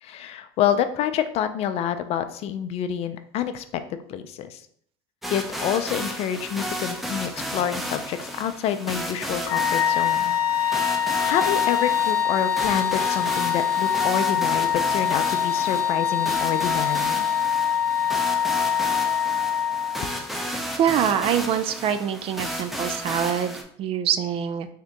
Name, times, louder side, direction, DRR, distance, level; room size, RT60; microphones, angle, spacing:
voice 1, 0.0-4.6 5.3-10.4 10.6-17.2, left 9 dB, 50° left, 10 dB, 0.4 m, -28 dB
sound 1, 5.2-23.6, equal, ahead, 0.7 m, -33 dB
Wind instrument woodwind instrument, 9.4-20.2, left 9 dB, 75° left, 0.8 m, -24 dB
voice 2, 20.8-24.7, right 9 dB, 45° right, 11 dB, 0.4 m, -24 dB
3.6 x 2.8 x 3.4 m, 0.62 s
hypercardioid pair, 90°, 14 cm